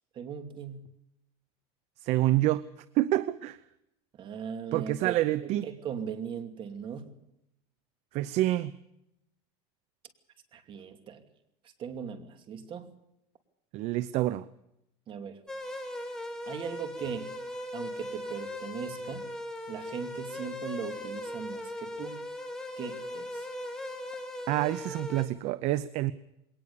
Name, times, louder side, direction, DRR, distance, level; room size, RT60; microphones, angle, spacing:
voice 1, 0.1-0.9 4.1-7.1 10.5-11.2 11.6-13.0 15.1-15.4 16.5-17.3 17.7-19.3 19.7-22.2 22.8-23.5, right 7 dB, 35° right, 2.7 m, -39 dB
voice 2, 2.0-2.6 2.9-3.6 4.7-5.7 8.1-8.7 13.7-14.5 24.5-26.1, right 15 dB, 55° right, 0.7 m, -27 dB
sound 1, 15.5-25.2, left 1 dB, 5° left, 3.9 m, -39 dB
21.5 x 18.5 x 7.0 m
supercardioid pair, 135°, 14 cm